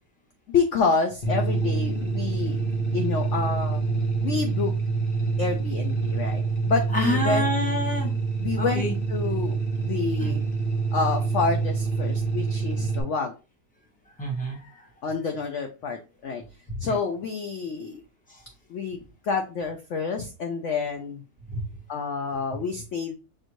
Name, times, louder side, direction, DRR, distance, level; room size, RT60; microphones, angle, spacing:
voice 1, 0.5-2.6 2.9-3.9 4.2-4.7 5.4-7.5 8.4-8.8 9.1-10.4 10.9-13.3 15.0-16.4 16.8-18.0 18.7-21.2 21.9-23.2, left 4 dB, 70° left, 4 dB, 0.7 m, -28 dB
sound 1, 1.2-13.0, right 4 dB, 35° left, 1.0 m, -26 dB
voice 2, 6.9-8.1 8.6-8.9 10.2-10.3 14.2-14.8 16.8-17.0 18.3-18.4 21.5-21.6, left 1 dB, 5° left, 0 dB, 0.9 m, -28 dB
6.5 x 2.6 x 3.0 m, 0.30 s
omnidirectional pair, 1.9 m